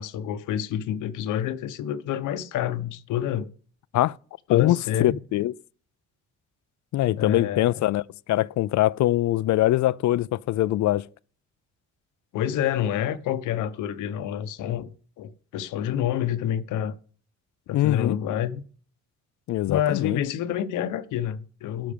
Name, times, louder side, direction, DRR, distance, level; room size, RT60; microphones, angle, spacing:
voice 1, 0.0-3.5 4.5-5.2 7.1-7.8 12.3-16.9 17.7-18.6 19.7-21.9, left 10 dB, 90° left, 1.0 m, -28 dB
voice 2, 4.5-5.5 6.9-8.0 8.3-11.0 17.7-18.2 19.5-20.2, left 15 dB, 70° left, 0.5 m, -22 dB
12.5 x 5.9 x 5.1 m
cardioid pair, 90°, 30 cm